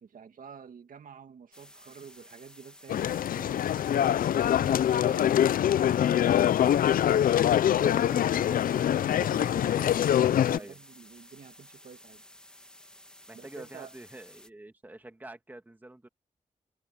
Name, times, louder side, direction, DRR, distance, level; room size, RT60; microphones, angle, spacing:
voice 1, 0.0-3.8 4.5-6.3 7.6-12.2 13.3-13.9, right 7 dB, 75° right, 2.1 m, -48 dB
sound 1, 1.5-14.5, left 1 dB, 5° left, 2.2 m, -54 dB
sound 2, 2.9-10.6, left 10 dB, 90° left, 0.4 m, -24 dB
voice 2, 13.3-16.1, right 2 dB, 15° right, 1.5 m, -46 dB
wide cardioid pair, 150°, 14 cm